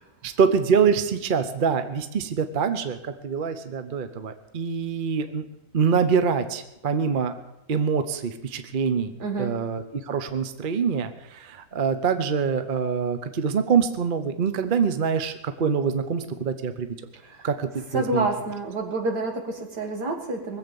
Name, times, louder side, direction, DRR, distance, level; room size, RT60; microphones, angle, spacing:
voice 1, 0.2-5.4 5.7-7.3 7.7-16.9 17.4-18.3, right 6 dB, 40° right, 9 dB, 0.9 m, -25 dB
voice 2, 9.2-9.6 17.2-17.5 17.9-20.6, right 2 dB, 80° right, 2 dB, 2.5 m, -28 dB
20.5 x 7.9 x 7.0 m, 0.90 s
omnidirectional pair, 1.7 m